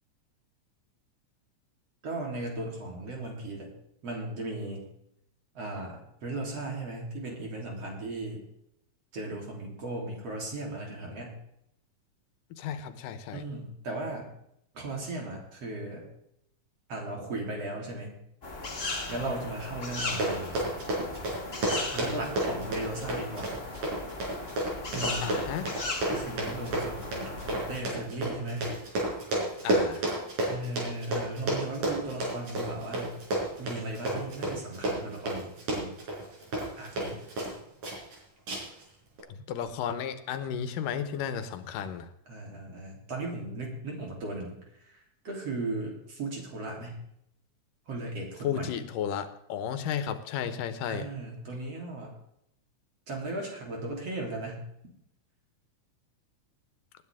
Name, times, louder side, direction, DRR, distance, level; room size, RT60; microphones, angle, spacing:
voice 1, 2.0-3.7 4.0-4.8 5.5-8.4 9.1-11.4 13.3-14.3 14.7-16.1 16.9-18.2 19.1-20.7 21.9-23.6 24.9-25.3 26.1-28.8 30.5-33.2 33.6-35.9 36.8-37.2 42.3-44.6 44.8-44.9 45.2-47.0 47.9-48.7 50.9-52.1 53.1-54.7, right 2 dB, 50° right, -1 dB, 4.3 m, -36 dB
voice 2, 12.6-13.4 25.2-25.7 29.6-30.1 39.5-42.1 48.4-51.1, left 8 dB, 85° left, 10 dB, 2.6 m, -33 dB
sound 1, 18.4-27.8, left 2 dB, 25° left, 1.4 m, -37 dB
Run, 20.0-37.5 37.8-38.2 38.5-38.8 39.2-39.3, right 1 dB, 75° right, 6.4 m, -31 dB
20.0 x 10.0 x 3.6 m, 0.76 s
omnidirectional pair, 3.7 m